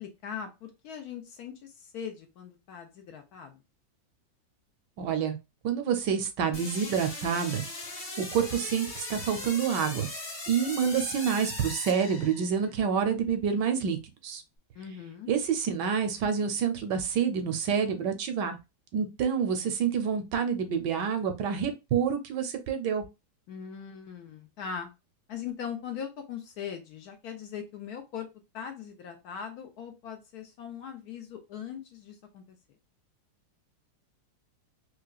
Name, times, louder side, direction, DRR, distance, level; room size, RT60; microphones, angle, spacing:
voice 1, 0.0-3.6 14.7-15.3 23.5-24.9 25.3-28.3 28.5-32.4, left 7 dB, 70° left, 5 dB, 1.0 m, -40 dB
voice 2, 5.0-5.4 5.6-7.6 8.2-10.1 10.5-14.0 14.2-14.4 15.3-18.6 18.9-23.0, right 7 dB, 75° right, 8 dB, 1.2 m, -28 dB
sound 1, 6.5-12.7, left 2 dB, 45° left, 1.1 m, -39 dB
4.7 x 2.1 x 2.3 m, 0.25 s
omnidirectional pair, 1.9 m